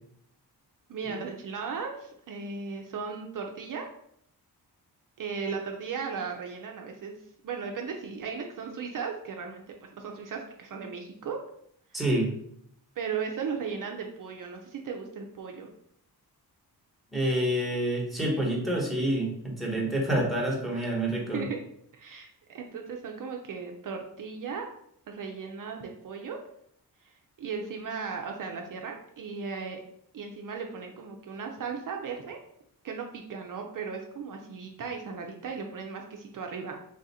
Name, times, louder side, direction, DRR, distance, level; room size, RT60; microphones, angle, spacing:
voice 1, 0.9-3.9 5.2-7.2 7.4-11.4 11.9-12.0 13.0-15.7 20.7-21.0 21.3-21.6 21.9-24.7 25.1-26.4 27.0-27.1 27.4-29.8 30.1-32.4 32.8-36.8, right 5 dB, 55° right, 2 dB, 0.5 m, -36 dB
voice 2, 11.9-12.3 17.1-21.5, right 1 dB, ahead, -3 dB, 1.1 m, -28 dB
3.4 x 2.5 x 4.1 m, 0.69 s
cardioid pair, 100°, 39 cm